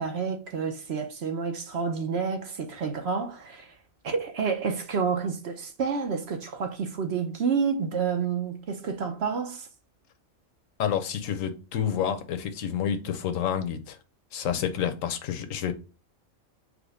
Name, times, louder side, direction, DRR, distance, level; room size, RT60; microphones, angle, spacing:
voice 1, 0.0-3.7 4.0-9.7, right 5 dB, 55° right, 0.9 m, -29 dB
voice 2, 10.8-14.0 14.3-15.7, left 9 dB, 75° left, 1.1 m, -29 dB
4.9 x 2.2 x 4.8 m
omnidirectional pair, 1.4 m